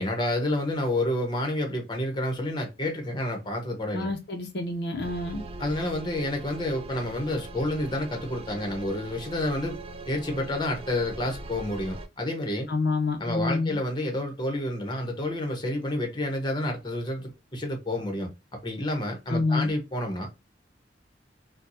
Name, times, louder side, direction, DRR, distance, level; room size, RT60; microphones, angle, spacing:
voice 1, 0.0-4.1 5.6-9.8 10.1-12.7 13.2-20.3, left 1 dB, 25° left, 0.9 m, -29 dB
voice 2, 3.9-5.4 12.7-13.8 19.3-19.7, left 3 dB, 60° left, 0.7 m, -28 dB
sound 1, 5.0-12.1, right 2 dB, 30° right, 0.4 m, -41 dB
4.4 x 2.2 x 2.6 m
head